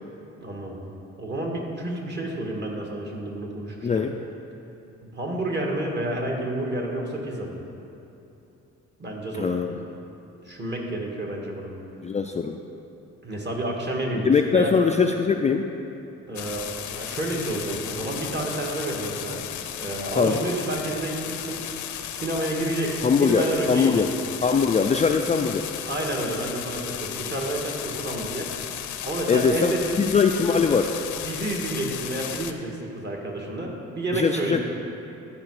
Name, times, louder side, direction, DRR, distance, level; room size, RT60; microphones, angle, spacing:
voice 1, 0.4-0.8 1.2-4.1 5.0-7.5 9.0-9.5 10.4-11.7 13.2-14.7 16.3-19.4 19.8-21.6 22.1-24.1 25.9-28.5 29.0-30.0 31.2-34.6, right 1 dB, 35° right, -1 dB, 1.7 m, -30 dB
voice 2, 3.8-4.2 9.4-9.7 12.0-12.6 14.2-15.7 20.2-20.4 23.0-24.1 24.4-25.7 29.3-30.9 34.1-34.6, left 5 dB, 25° left, 4 dB, 0.3 m, -21 dB
sound 1, 16.4-32.5, left 10 dB, 75° left, 0.6 m, -35 dB
12.5 x 4.9 x 4.8 m, 2.9 s
cardioid pair, 90°, 30 cm